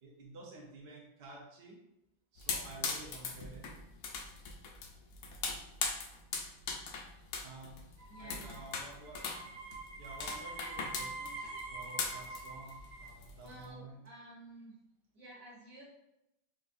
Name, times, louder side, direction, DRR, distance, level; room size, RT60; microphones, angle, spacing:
voice 1, 0.0-1.8 2.3-3.7 7.4-7.8 8.2-9.2 10.0-14.0, right 2 dB, 65° right, -3 dB, 0.6 m, -51 dB
sound 1, 2.4-13.7, left 4 dB, 90° left, 0.7 m, -40 dB
sound 2, 8.0-13.1, right 3 dB, 90° right, 1.4 m, -45 dB
voice 2, 8.1-8.6 13.4-14.8 15.1-15.9, right 1 dB, 50° right, -5 dB, 1.4 m, -52 dB
4.4 x 2.5 x 2.5 m, 0.87 s
omnidirectional pair, 2.1 m